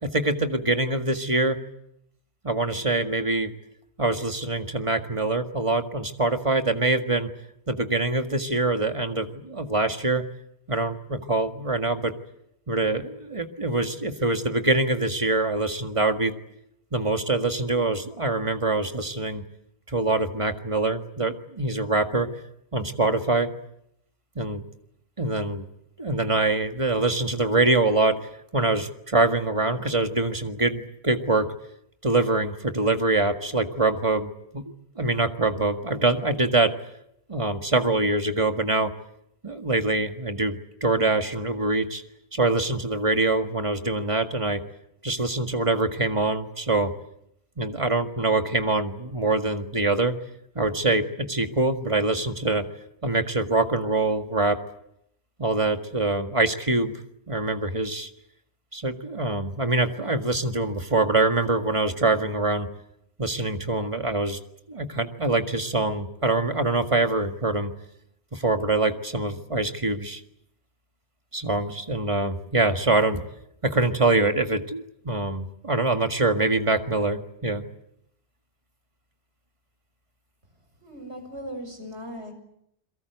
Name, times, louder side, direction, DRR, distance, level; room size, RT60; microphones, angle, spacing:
voice 1, 0.0-1.6 2.4-3.5 4.0-7.3 7.7-10.2 10.7-12.1 12.7-16.3 16.9-19.4 19.9-22.3 22.7-23.5 24.4-24.6 25.2-25.7 26.0-31.5 32.0-34.6 35.0-36.7 37.3-38.9 39.4-42.0 42.3-44.6 45.0-46.9 47.6-50.2 50.6-52.7 53.0-54.6 55.4-56.9 57.3-58.1 58.7-62.7 63.2-64.4 64.7-67.7 68.3-70.2 71.3-73.2 73.6-77.6, right 2 dB, 25° right, 6 dB, 1.9 m, -24 dB
voice 2, 80.8-82.3, equal, 65° right, 5 dB, 6.6 m, -38 dB
29.5 x 22.5 x 8.1 m, 0.77 s
omnidirectional pair, 1.2 m